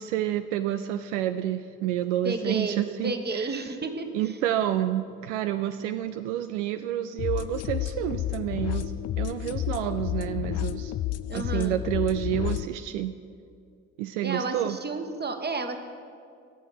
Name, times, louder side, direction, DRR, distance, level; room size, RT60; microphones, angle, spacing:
voice 1, 0.0-3.6 4.1-10.9 11.3-13.1 14.0-14.8, right 12 dB, 80° right, 10 dB, 0.5 m, -29 dB
voice 2, 2.2-4.1 11.3-11.8 14.2-15.8, right 3 dB, 25° right, 7 dB, 1.4 m, -31 dB
sound 1, 7.2-12.7, left 13 dB, 45° left, 0.5 m, -31 dB
17.5 x 7.3 x 5.8 m, 2.3 s
hypercardioid pair, 45°, 36 cm